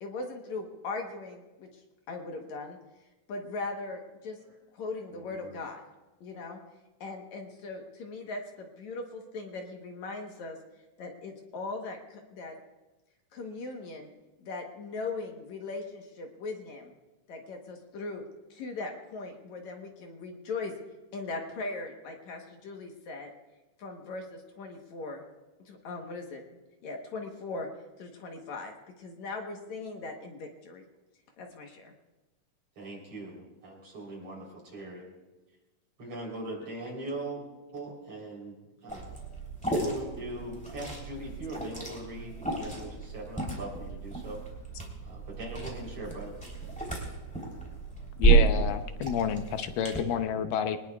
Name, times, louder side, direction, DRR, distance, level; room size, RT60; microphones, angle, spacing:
voice 1, 0.0-1.8 2.1-2.8 3.3-4.4 4.7-5.8 6.2-6.6 7.0-10.6 11.0-12.6 13.3-14.1 14.4-16.9 17.3-18.2 18.5-20.7 21.1-23.3 23.8-25.2 25.7-26.4 26.8-27.7 28.0-30.8 31.4-31.9, left 3 dB, 65° left, 2 dB, 2.4 m, -39 dB
voice 2, 5.1-5.5 32.8-34.4 34.7-35.0 36.0-37.4 37.7-39.1 39.8-44.4 45.0-46.3, right 1 dB, 45° right, -2 dB, 4.6 m, -41 dB
Liquid, 38.9-50.0, right 4 dB, ahead, 3.1 m, -31 dB
voice 3, 48.2-50.8, left 8 dB, 85° left, 8 dB, 2.5 m, -29 dB
23.0 x 19.5 x 2.4 m, 1.1 s
omnidirectional pair, 3.8 m